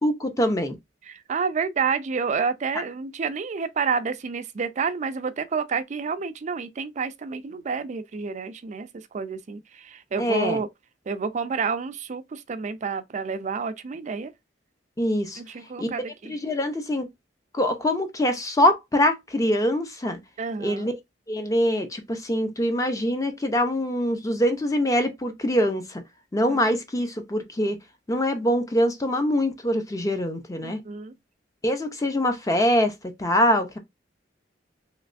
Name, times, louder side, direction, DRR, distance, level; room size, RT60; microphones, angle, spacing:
voice 1, 0.0-0.8 10.2-10.6 15.0-15.4 15.8-15.9 16.3-17.1 17.5-20.2 20.6-20.9 21.3-26.0 26.3-27.8 28.1-30.8 31.6-32.9 33.2-33.8, equal, 20° left, 0.6 m, -24 dB
voice 2, 1.0-10.7 11.1-14.3 15.4-16.4 20.4-20.9 26.5-26.6 30.6-31.1, right 5 dB, 40° right, 0.4 m, -29 dB
3.2 x 3.1 x 2.5 m
head